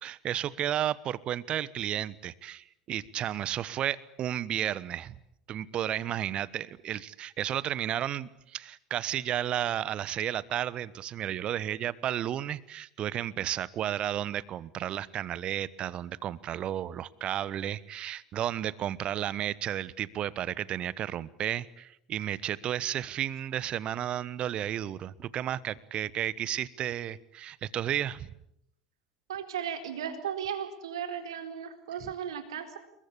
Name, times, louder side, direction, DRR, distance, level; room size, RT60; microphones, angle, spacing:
voice 1, 0.0-5.2 5.5-28.3 32.0-32.1, right 11 dB, 40° right, 20 dB, 1.2 m, -33 dB
voice 2, 29.3-32.8, right 8 dB, 65° right, 7 dB, 4.1 m, -36 dB
28.5 x 22.5 x 8.6 m, 0.75 s
figure-of-eight pair, 75°, 3 cm